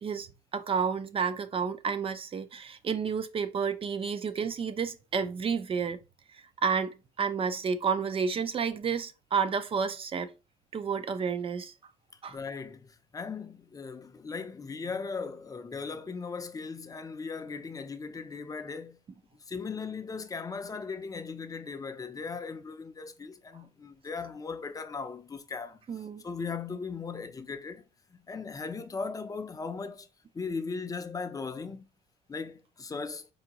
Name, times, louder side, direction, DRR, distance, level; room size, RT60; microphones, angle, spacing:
voice 1, 0.0-6.0 6.3-10.3 10.7-11.7 12.2-12.4 25.9-26.2, right 6 dB, 35° right, 0.5 m, -31 dB
voice 2, 12.3-19.0 19.5-27.8 28.1-30.1 30.3-31.9 32.3-33.3, left 4 dB, 20° left, 0.5 m, -38 dB
4.7 x 2.6 x 2.9 m
cardioid pair, 110°, 17 cm